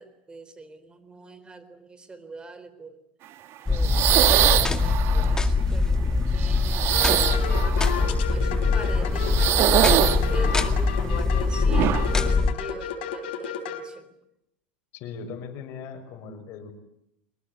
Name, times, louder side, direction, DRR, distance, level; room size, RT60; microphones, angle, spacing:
voice 1, 0.0-3.0 3.7-6.0 6.3-9.8 10.3-14.1, right 3 dB, 15° right, 13 dB, 4.0 m, -42 dB
sound 1, 3.7-12.5, left 3 dB, 10° left, 2.1 m, -23 dB
sound 2, 3.7-5.4 6.4-8.1 9.2-10.8 11.7-12.1, right 12 dB, 45° right, 1.9 m, -23 dB
sound 3, 6.9-13.8, left 7 dB, 70° left, 4.3 m, -32 dB
voice 2, 14.9-16.7, left 5 dB, 50° left, 7 dB, 6.1 m, -39 dB
24.5 x 21.5 x 9.6 m, 0.81 s
hypercardioid pair, 105°, 6 cm